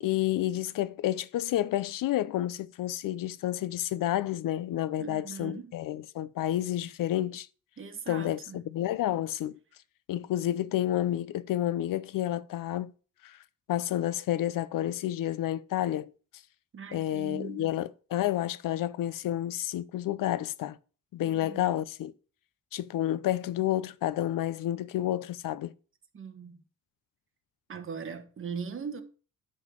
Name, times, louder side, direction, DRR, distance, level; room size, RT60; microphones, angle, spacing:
voice 1, 0.0-7.5 8.1-9.5 10.1-12.9 13.2-13.4 13.7-16.1 16.9-20.8 21.1-22.1 22.7-25.7, left 13 dB, 75° left, 0.6 m, -30 dB
voice 2, 5.0-5.8 7.8-8.6 16.7-17.7 21.2-21.7 26.1-26.6 27.7-29.0, right 6 dB, 40° right, 1.3 m, -40 dB
10.0 x 4.0 x 6.2 m
cardioid pair, 120°, 33 cm